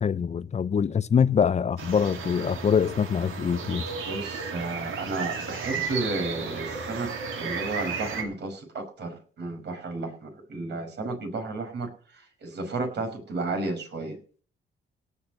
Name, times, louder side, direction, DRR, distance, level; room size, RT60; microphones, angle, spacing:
voice 1, 0.0-3.8, left 7 dB, 35° left, 0.6 m, -24 dB
sound 1, 1.8-8.2, right 5 dB, 85° right, 3.0 m, -34 dB
voice 2, 4.1-14.2, right 2 dB, 60° right, 5.8 m, -33 dB
18.0 x 6.5 x 6.4 m
cardioid pair, 90°, 20 cm